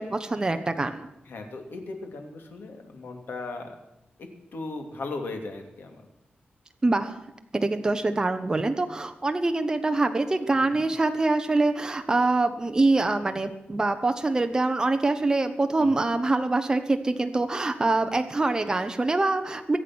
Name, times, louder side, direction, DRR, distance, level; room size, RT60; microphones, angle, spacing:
voice 1, 0.0-1.1 6.8-7.2 7.5-19.8, right 2 dB, 20° right, 7 dB, 1.0 m, -24 dB
voice 2, 1.3-3.8 4.2-6.0 10.5-10.8 15.8-16.0, left 3 dB, 75° left, 4 dB, 2.9 m, -37 dB
23.5 x 8.8 x 6.2 m, 0.88 s
wide cardioid pair, 155°, 4 cm